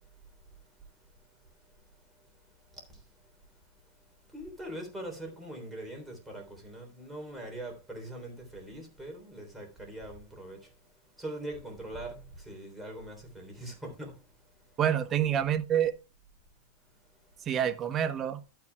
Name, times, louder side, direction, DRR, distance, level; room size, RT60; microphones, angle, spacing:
voice 1, 4.3-10.7 11.2-14.2, right 1 dB, 5° right, 3.3 m, -42 dB
voice 2, 14.8-15.9 17.5-18.4, right 9 dB, 25° right, 0.9 m, -27 dB
12.0 x 9.0 x 2.3 m
supercardioid pair, 145°, 0 cm